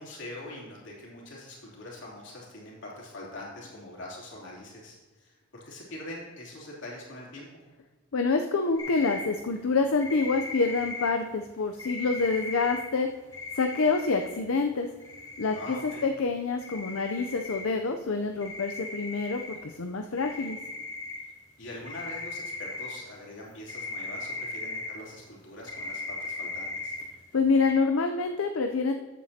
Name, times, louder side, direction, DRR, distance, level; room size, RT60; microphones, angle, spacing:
voice 1, 0.0-7.5 15.5-16.1 21.2-21.3 21.6-26.9, left 1 dB, 55° left, -4 dB, 3.1 m, -43 dB
voice 2, 8.1-13.1 13.5-14.9 15.4-20.6 27.3-28.9, left 4 dB, 70° left, 5 dB, 0.6 m, -27 dB
sound 1, 8.8-9.2 10.0-11.1 11.8-12.8 13.3-14.3 15.0-16.1 16.6-17.6 18.4-19.6 20.2-21.2 21.7-22.9 23.7-24.9 25.7-27.0 27.6-27.7, left 3 dB, 15° left, 1.7 m, -37 dB
13.5 x 8.3 x 2.8 m, 1.3 s
head